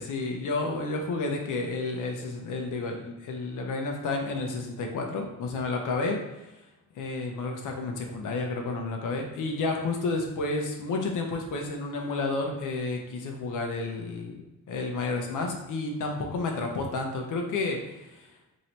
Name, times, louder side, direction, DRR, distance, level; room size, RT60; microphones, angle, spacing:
voice 1, 0.0-6.5 6.9-14.4 14.7-18.3, left 3 dB, 80° left, 2 dB, 0.8 m, -31 dB
3.1 x 2.8 x 4.1 m, 1.0 s
cardioid pair, 115°, 31 cm